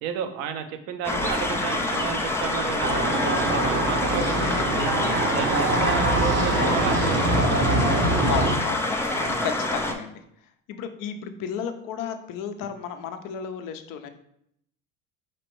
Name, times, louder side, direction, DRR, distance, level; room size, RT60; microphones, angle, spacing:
voice 1, 0.0-4.9 5.3-7.6 9.1-9.5, right 8 dB, 70° right, 7 dB, 0.7 m, -32 dB
sound 1, 1.0-9.9, left 2 dB, 5° left, 0.3 m, -27 dB
sound 2, 2.8-8.6, right 2 dB, 25° right, 0.7 m, -24 dB
voice 2, 8.3-9.0 9.4-10.2 10.7-14.1, left 7 dB, 50° left, 8 dB, 0.6 m, -33 dB
5.0 x 3.0 x 3.0 m, 0.74 s
hypercardioid pair, 80°, 43 cm